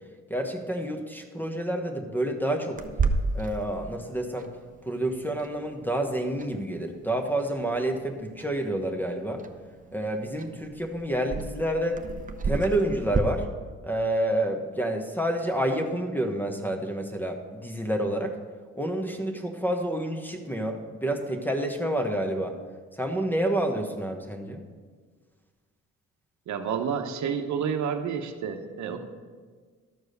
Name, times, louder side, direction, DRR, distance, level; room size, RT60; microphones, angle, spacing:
voice 1, 0.3-2.8 3.3-4.5 4.9-9.4 9.9-12.0 12.4-13.5 13.8-18.4 18.8-22.6 22.9-24.6, right 1 dB, 5° left, 4 dB, 1.1 m, -29 dB
Clock, 2.8-13.2, right 4 dB, 25° right, 0.7 m, -34 dB
voice 2, 26.5-29.0, right 7 dB, 70° right, 6 dB, 0.9 m, -30 dB
12.5 x 4.8 x 6.5 m, 1.6 s
cardioid pair, 90°, 30 cm